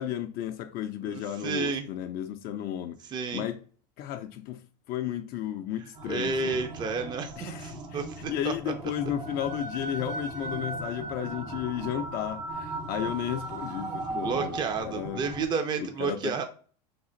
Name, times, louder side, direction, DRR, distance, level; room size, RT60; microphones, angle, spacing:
voice 1, 0.0-3.0 3.3-3.6 4.0-6.6 7.4-15.3 15.8-16.4, left 11 dB, 45° left, 0.4 m, -33 dB
voice 2, 1.0-1.9 3.1-3.5 6.1-8.5 13.9-16.4, right 5 dB, 20° right, 0.4 m, -31 dB
sound 1, 5.9-15.5, right 2 dB, 85° right, 1.5 m, -37 dB
3.3 x 2.4 x 3.8 m
hypercardioid pair, 105°, 21 cm